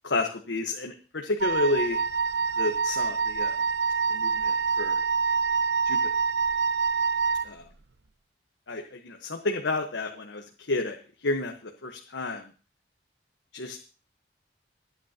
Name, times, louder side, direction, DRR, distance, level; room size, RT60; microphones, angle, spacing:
voice 1, 0.0-2.0 2.6-3.6 4.1-5.0 5.9-6.0 7.4-7.6 8.7-11.0 11.2-11.5 11.8-12.4 13.5-13.8, left 2 dB, 80° left, 3 dB, 1.2 m, -30 dB
Wind instrument woodwind instrument, 1.4-7.5, right 5 dB, 70° right, 0.7 m, -26 dB
26.0 x 9.3 x 2.9 m, 0.36 s
head